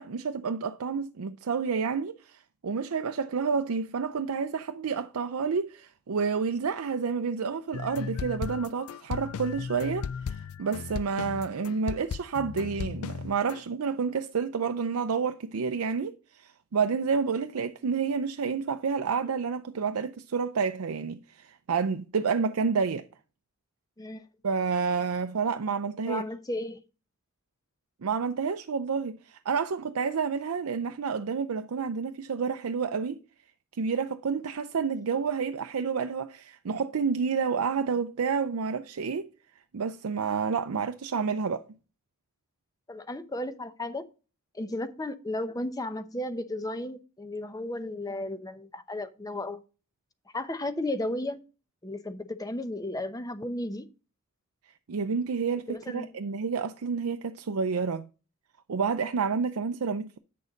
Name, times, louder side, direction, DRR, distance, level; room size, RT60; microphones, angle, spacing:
voice 1, 0.0-23.1 24.4-26.2 28.0-33.2 33.8-39.3 39.7-41.6 54.9-58.0 58.7-60.2, right 5 dB, 80° right, 0.5 m, -29 dB
sound 1, 7.7-13.6, left 6 dB, 75° left, 0.4 m, -36 dB
voice 2, 26.1-26.8 42.9-44.0 44.5-49.6 50.3-51.4 51.8-53.9 55.7-56.1, left 1 dB, 15° left, 0.7 m, -34 dB
8.3 x 6.4 x 3.9 m
head